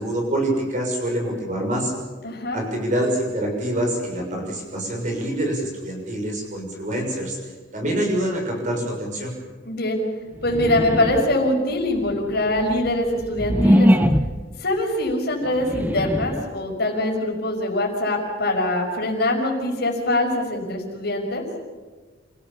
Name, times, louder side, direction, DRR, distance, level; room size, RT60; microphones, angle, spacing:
voice 1, 0.0-1.9 2.5-7.4 7.7-9.3, right 1 dB, 35° right, 1 dB, 6.6 m, -25 dB
voice 2, 2.2-2.6 9.6-10.0 10.4-13.9 14.6-21.4, left 1 dB, 50° left, 0 dB, 5.7 m, -23 dB
sound 1, 10.4-11.5 12.1-14.5 15.5-16.5, equal, 10° right, 0.8 m, -21 dB
28.5 x 16.5 x 7.2 m, 1.4 s
head